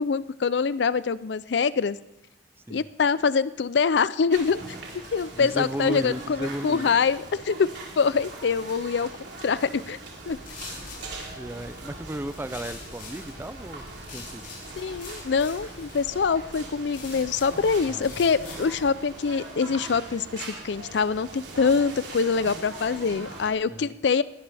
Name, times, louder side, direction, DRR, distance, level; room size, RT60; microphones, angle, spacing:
voice 1, 0.0-2.0 2.7-4.6 5.1-9.1 9.4-10.0 10.3-10.4 14.8-24.2, left 5 dB, 70° left, 17 dB, 0.4 m, -24 dB
sound 1, 4.3-23.5, right 2 dB, 70° right, 3.5 m, -41 dB
voice 2, 5.4-6.9 11.4-13.9 14.1-14.5 17.9-18.1 23.7-23.9, right 1 dB, 10° right, 13 dB, 0.4 m, -34 dB
sound 2, 10.3-18.9, left 3 dB, 45° left, 5.9 m, -44 dB
20.0 x 13.0 x 3.4 m, 0.90 s
head